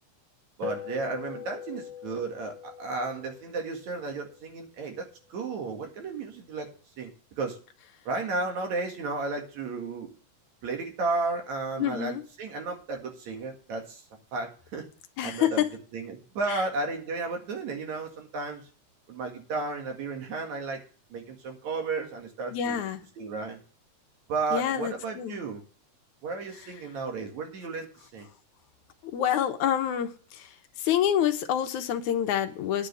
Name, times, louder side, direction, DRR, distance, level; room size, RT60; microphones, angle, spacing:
sound 1, 0.6-5.3, left 7 dB, 15° right, 0.5 m, -42 dB
voice 1, 0.6-6.7 7.0-7.1 7.4-7.6 8.1-10.1 10.6-14.0 14.3-14.9 15.2-15.6 15.9-18.6 19.1-20.8 21.1-22.8 23.2-23.6 24.3-25.6 26.2-28.3, right 3 dB, 65° right, 3 dB, 3.2 m, -33 dB
voice 2, 11.8-12.2 15.2-15.7 16.5-16.6 22.5-23.0 24.5-25.4 29.1-30.1 30.8-32.9, left 10 dB, 75° left, 7 dB, 2.3 m, -27 dB
10.0 x 5.3 x 8.2 m, 0.40 s
omnidirectional pair, 3.6 m